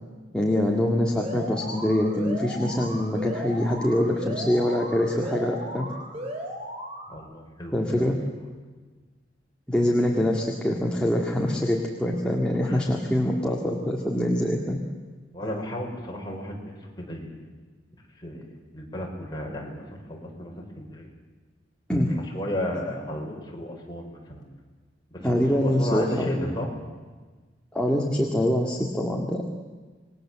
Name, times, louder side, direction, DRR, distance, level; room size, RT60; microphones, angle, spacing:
voice 1, 0.3-5.9 7.7-8.2 9.7-14.8 21.9-22.1 25.2-26.3 27.7-29.4, left 1 dB, 5° left, -1 dB, 2.1 m, -24 dB
Alarm, 1.1-7.1, equal, 35° right, 5.0 m, -36 dB
voice 2, 7.1-8.1 12.6-12.8 15.3-17.4 18.2-18.5 18.7-21.1 21.9-22.0 22.3-24.4 25.1-26.7, equal, 20° left, -1 dB, 5.6 m, -34 dB
27.5 x 21.0 x 7.7 m, 1.4 s
head